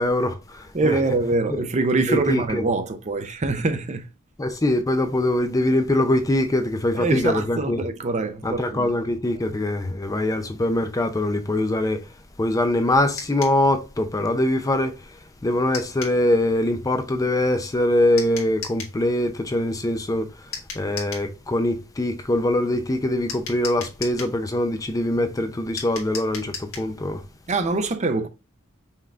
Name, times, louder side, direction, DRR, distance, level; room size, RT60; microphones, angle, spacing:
voice 1, 0.0-1.0 1.5-1.6 2.1-2.6 4.4-7.8 8.4-12.0 12.4-15.0 15.4-20.3 20.7-27.2, left 1 dB, 15° left, 0.4 m, -23 dB
voice 2, 0.7-4.0 6.9-8.9 9.4-9.5 25.2-25.3 27.5-28.3, right 3 dB, 35° right, 0.6 m, -24 dB
sound 1, 13.2-13.6 15.7-16.2 18.2-19.0 20.5-21.3 23.3-24.4 25.8-26.9, left 6 dB, 70° left, 1.6 m, -35 dB
5.5 x 3.6 x 2.4 m
head